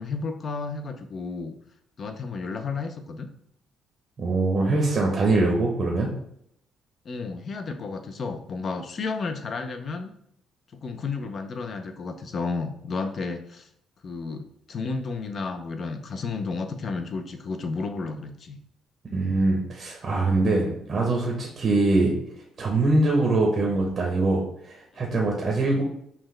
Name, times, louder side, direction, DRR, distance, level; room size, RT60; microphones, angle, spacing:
voice 1, 0.0-1.5 2.0-3.3 7.0-10.1 10.7-13.7 14.0-18.6 24.9-25.0, left 4 dB, 35° left, 7 dB, 0.4 m, -32 dB
voice 2, 4.2-6.1 19.1-22.1 22.6-25.8, right 2 dB, 35° right, 0 dB, 0.7 m, -23 dB
5.6 x 2.1 x 3.2 m, 0.72 s
cardioid pair, 150°, 0 cm